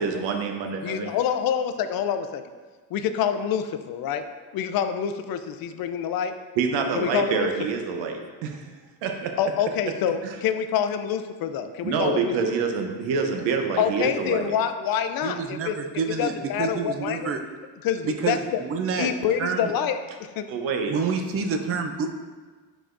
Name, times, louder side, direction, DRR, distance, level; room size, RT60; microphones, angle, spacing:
voice 1, 0.0-1.1 6.6-8.6 9.0-9.3 10.2-10.3 11.8-14.5 20.5-21.0, right 5 dB, 90° right, 4 dB, 0.9 m, -26 dB
voice 2, 0.8-2.4 2.9-4.3 4.5-6.3 6.9-7.5 9.4-12.3 13.8-15.8 16.2-17.3 17.8-18.6 19.0-20.0 20.4-20.5, left 8 dB, 55° left, 9 dB, 0.5 m, -26 dB
voice 3, 15.2-17.4 18.1-19.1 19.4-19.7 20.8-22.1, right 5 dB, 35° right, 6 dB, 0.5 m, -28 dB
7.9 x 4.9 x 2.5 m, 1.4 s
cardioid pair, 145°, 43 cm